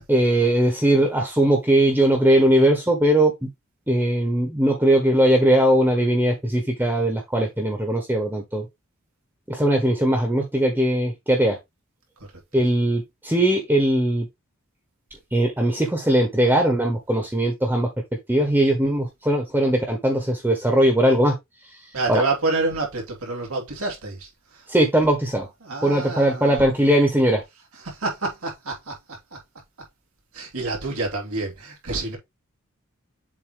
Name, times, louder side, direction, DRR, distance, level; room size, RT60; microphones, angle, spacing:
voice 1, 0.1-3.5 3.9-8.6 9.5-11.6 12.5-14.3 15.3-17.9 18.3-21.3 22.1-22.2 24.7-25.5 25.8-27.4, right 1 dB, 10° right, 1.3 m, -20 dB
voice 2, 21.9-24.7 25.6-26.6 27.7-29.0 29.3-29.4 30.3-32.2, right 3 dB, 90° right, 2.8 m, -28 dB
7.4 x 3.0 x 4.8 m
head